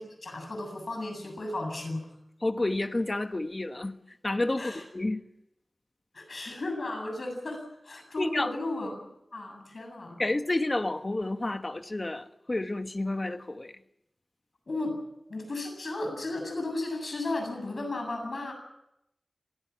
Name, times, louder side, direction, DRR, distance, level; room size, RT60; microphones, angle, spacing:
voice 1, 0.0-2.1 4.6-4.8 6.1-9.0 9.3-10.2 14.7-15.0 15.3-18.5, left 2 dB, 65° left, 7.9 m, -34 dB
voice 2, 2.4-4.0 4.2-5.2 8.2-8.5 10.2-13.7, left 2 dB, 35° left, 1.3 m, -30 dB
26.5 x 17.5 x 7.4 m
wide cardioid pair, 70°, 0 cm